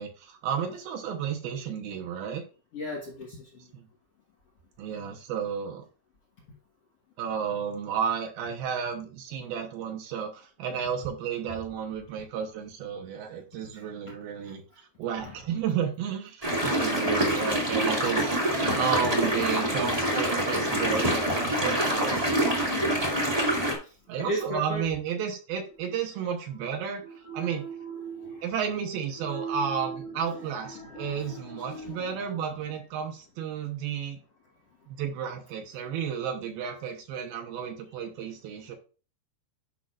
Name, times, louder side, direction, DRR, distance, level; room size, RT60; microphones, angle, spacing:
voice 1, 0.0-2.4 3.7-3.9 4.8-5.8 7.2-22.9 24.1-27.6 28.4-34.2 34.9-38.8, right 7 dB, 75° right, 3 dB, 2.6 m, -32 dB
voice 2, 2.7-3.7 13.7-14.5 15.2-15.4 17.4-17.5 18.6-18.8 22.8-24.9 26.8-28.5 29.1-32.4, right 2 dB, 55° left, -3 dB, 1.7 m, -39 dB
sound 1, 16.4-23.7, right 1 dB, 15° right, 1.2 m, -26 dB
10.5 x 5.8 x 2.5 m, 0.35 s
omnidirectional pair, 4.8 m